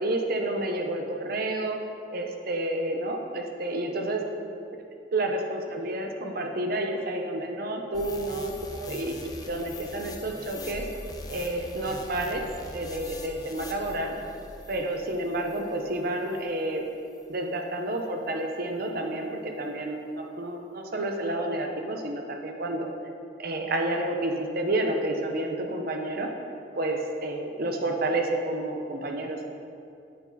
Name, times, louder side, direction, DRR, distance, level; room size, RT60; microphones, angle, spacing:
voice 1, 0.0-1.8 2.1-4.2 5.1-10.8 11.3-12.5 12.7-14.1 14.7-16.8 17.3-22.9 23.4-26.3 26.7-29.5, right 1 dB, 55° right, 3 dB, 1.0 m, -30 dB
sound 1, 7.9-16.6 17.1-17.2, left 2 dB, 20° left, 0.7 m, -43 dB
8.7 x 8.6 x 4.1 m, 2.5 s
head